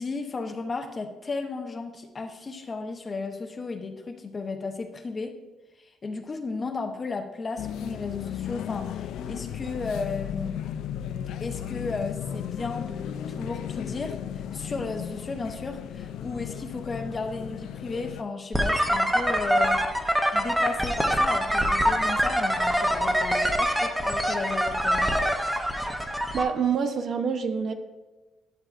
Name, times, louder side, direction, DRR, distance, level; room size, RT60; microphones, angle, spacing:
voice 1, 0.0-5.4 5.8-10.6 11.4-19.8 20.3-25.2, left 4 dB, 25° left, 5 dB, 0.8 m, -34 dB
sound 1, 7.6-18.2, left 9 dB, 80° left, 0.4 m, -35 dB
sound 2, 18.5-26.4, equal, 5° right, 0.7 m, -24 dB
voice 2, 26.3-27.7, right 6 dB, 50° right, 7 dB, 0.7 m, -26 dB
11.5 x 6.5 x 2.5 m, 1.1 s
cardioid pair, 135°, 0 cm